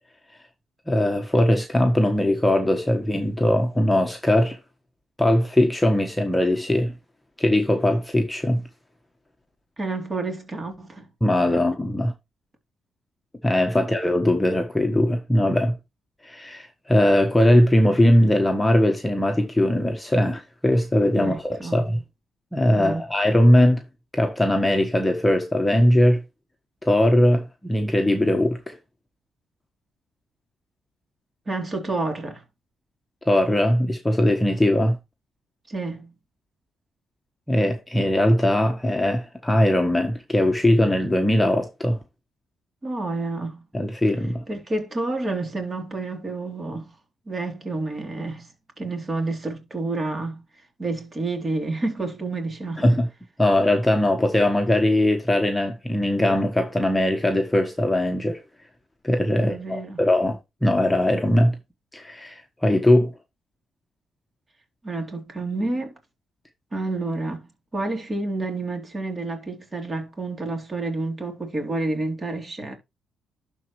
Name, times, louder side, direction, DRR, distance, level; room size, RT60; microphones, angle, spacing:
voice 1, 0.9-4.6 5.2-6.9 7.4-8.6 11.2-12.1 13.4-15.8 16.2-22.0 22.5-23.8 24.1-26.2 26.8-28.8 33.2-35.0 37.5-42.0 43.7-44.4 52.8-53.1 53.4-58.4 59.0-61.6 61.9-63.1, left 1 dB, 10° left, 1.3 m, -20 dB
voice 2, 9.8-11.1 11.5-11.6 13.7-13.9 21.1-21.8 22.7-23.0 31.5-32.4 35.7-36.1 42.8-43.6 44.5-46.9 47.3-48.5 48.8-50.4 50.8-53.0 59.3-60.0 64.8-65.9 66.7-67.5 67.7-72.8, right 2 dB, 30° right, 3.4 m, -29 dB
11.5 x 4.4 x 3.2 m
cardioid pair, 90°, 0 cm